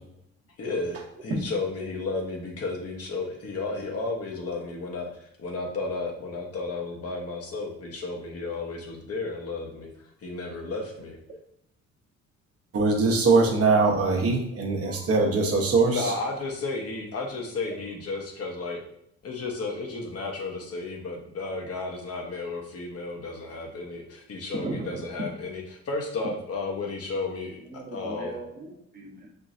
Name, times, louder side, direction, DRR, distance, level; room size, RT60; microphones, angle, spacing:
voice 1, 0.6-9.9 10.2-11.2 15.9-18.8 19.2-28.4, left 3 dB, 55° left, 1 dB, 1.0 m, -33 dB
voice 2, 12.7-16.0, right 3 dB, 50° right, 1 dB, 0.9 m, -22 dB
voice 3, 24.6-25.0 27.6-29.3, right 2 dB, 30° right, -1 dB, 1.0 m, -36 dB
4.6 x 2.9 x 2.6 m, 0.74 s
cardioid pair, 90°, 30 cm